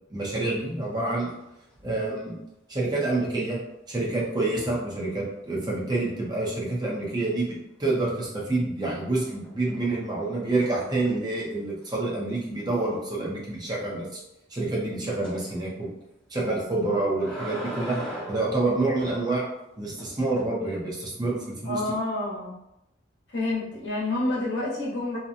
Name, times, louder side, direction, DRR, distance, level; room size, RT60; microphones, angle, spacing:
voice 1, 0.1-1.3 1.8-2.4 2.7-3.6 3.9-14.2 14.5-15.9 16.3-18.0 18.3-19.4 19.8-21.8, right 2 dB, 20° right, -4 dB, 0.6 m, -27 dB
sound 1, 0.8-1.4 1.7-2.1 4.4-4.9 8.1-8.5 9.0-11.4 11.8-11.9 12.3-12.4 12.8-12.9 15.2-15.4 16.7-19.2 20.0-20.4, right 1 dB, 10° left, 0.8 m, -41 dB
voice 2, 21.6-22.5 23.3-25.2, left 2 dB, 65° left, -6 dB, 0.9 m, -28 dB
2.8 x 2.1 x 2.5 m, 0.85 s
head